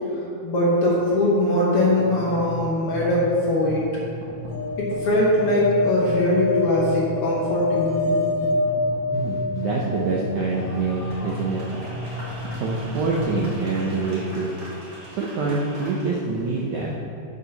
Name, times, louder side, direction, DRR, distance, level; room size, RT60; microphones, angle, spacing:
voice 1, 0.4-3.9 4.8-8.2, left 1 dB, 75° left, -6 dB, 1.3 m, -21 dB
sound 1, 1.8-14.3, left 1 dB, 70° right, 3.2 m, -35 dB
sound 2, 4.5-10.6 12.9-13.0 13.2-13.3, left 3 dB, 25° left, 1.7 m, -27 dB
voice 2, 9.1-11.6 12.6-14.5 15.1-16.9, right 3 dB, 85° right, -4 dB, 1.6 m, -25 dB
sound 3, 10.3-16.3, equal, 35° right, 1.7 m, -40 dB
7.3 x 6.7 x 5.8 m, 2.5 s
omnidirectional pair, 4.6 m